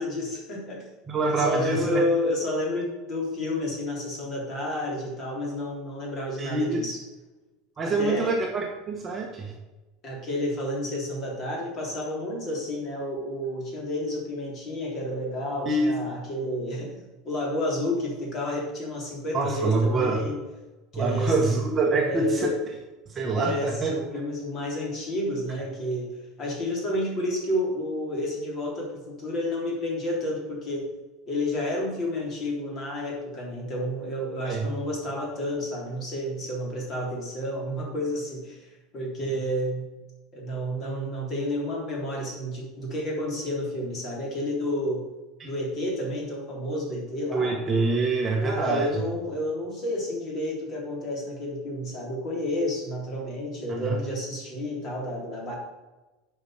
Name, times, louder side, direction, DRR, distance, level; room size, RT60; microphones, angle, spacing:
voice 1, 0.0-0.9 1.2-7.0 7.8-8.3 10.0-16.9 17.2-20.4 20.9-21.3 22.1-22.6 23.4-26.1 26.4-30.9 31.3-39.9 40.3-45.0 45.4-47.5 48.4-55.5, left 1 dB, 30° left, -2 dB, 3.5 m, -30 dB
voice 2, 1.1-2.0 6.4-6.8 7.8-9.5 15.7-15.9 19.3-20.2 20.9-22.5 23.1-23.9 34.5-34.7 39.2-39.3 45.4-45.5 47.3-49.0 53.7-54.0, right 3 dB, 20° right, 0 dB, 1.2 m, -25 dB
8.9 x 5.7 x 6.5 m, 1.1 s
cardioid pair, 165°, 0 cm